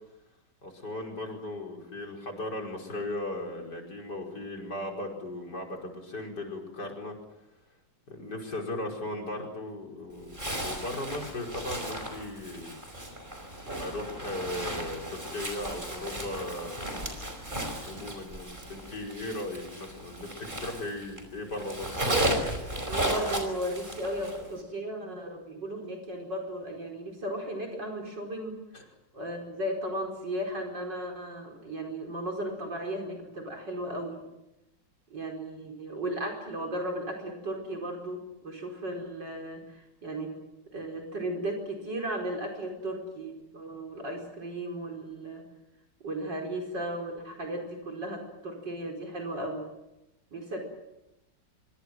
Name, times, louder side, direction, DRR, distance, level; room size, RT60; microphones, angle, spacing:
voice 1, 0.6-7.2 8.1-12.8 13.8-16.9 17.8-22.0 28.7-28.8, left 1 dB, 65° left, 1 dB, 5.8 m, -37 dB
Zipper (clothing), 10.3-21.2 21.5-24.5, right 1 dB, 25° right, 5.3 m, -34 dB
voice 2, 22.9-28.6 29.1-34.2 35.1-40.3 40.7-45.4 46.0-49.6 50.3-50.6, right 1 dB, 75° right, 2 dB, 5.5 m, -35 dB
25.5 x 24.0 x 7.8 m, 0.92 s
omnidirectional pair, 1.9 m